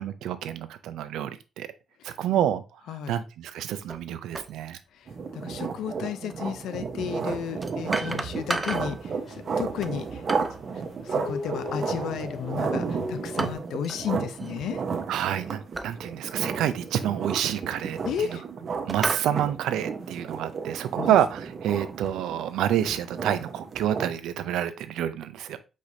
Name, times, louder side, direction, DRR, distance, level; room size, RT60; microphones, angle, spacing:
voice 1, 0.0-1.7 2.0-2.6 2.9-4.8 15.1-18.4 18.9-25.6, right 10 dB, 85° right, 12 dB, 0.5 m, -28 dB
voice 2, 2.9-3.2 4.9-10.2 11.0-14.8 18.0-18.4 21.0-21.2, left 8 dB, 80° left, 12 dB, 0.5 m, -33 dB
sound 1, 3.9-4.0 4.3-4.5 6.3-6.4 7.6-9.0 9.8-10.6 12.2-12.6 13.4-14.0 14.3-14.6 15.7-15.9 16.5-16.6 17.6-18.4 18.9-19.3, right 2 dB, 20° right, 0.5 m, -33 dB
sound 2, 5.1-24.2, right 5 dB, 50° right, 0.8 m, -33 dB
sound 3, 7.1-13.5, left 3 dB, 40° left, 1.6 m, -41 dB
4.8 x 4.1 x 2.7 m, 0.29 s
cardioid pair, 90°, 0 cm